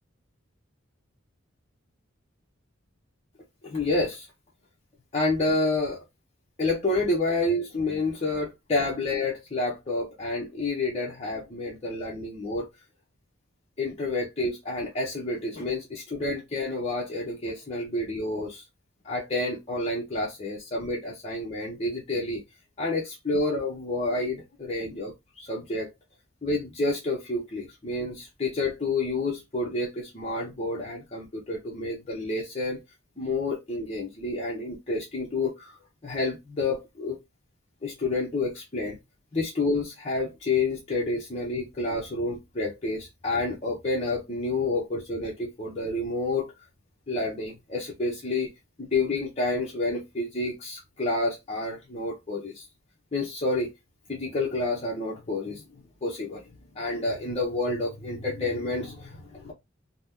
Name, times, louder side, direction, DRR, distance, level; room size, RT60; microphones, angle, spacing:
voice 1, 3.6-4.3 5.1-6.0 6.6-12.7 13.8-18.6 19.0-22.4 22.8-25.9 26.4-32.8 33.2-35.8 36.0-37.2 37.8-39.0 39.3-46.5 47.1-48.5 48.8-52.6 53.1-53.7 54.1-56.5 56.7-59.5, left 2 dB, 35° left, 0.7 m, -29 dB
2.8 x 2.1 x 3.5 m
head